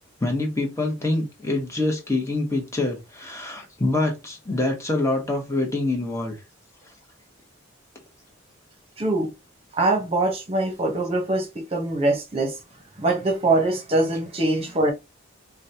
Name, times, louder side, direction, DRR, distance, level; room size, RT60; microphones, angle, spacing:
voice 1, 0.2-6.3, left 2 dB, 15° left, 1.1 m, -25 dB
voice 2, 9.0-9.3 9.7-12.5 13.0-14.9, right 2 dB, 30° right, 0.9 m, -23 dB
4.8 x 2.3 x 2.8 m
head